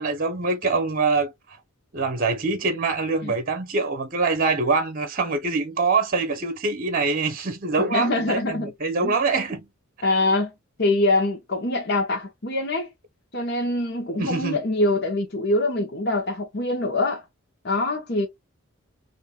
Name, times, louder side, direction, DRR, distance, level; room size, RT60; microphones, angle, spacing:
voice 1, 0.0-1.3 1.9-9.6 14.2-14.6, right 4 dB, 40° right, 0.8 m, -24 dB
voice 2, 7.9-8.7 9.0-9.2 10.0-10.5 10.8-12.9 13.3-17.2 17.6-18.3, left 2 dB, 50° left, 1.0 m, -24 dB
5.2 x 2.6 x 2.2 m
head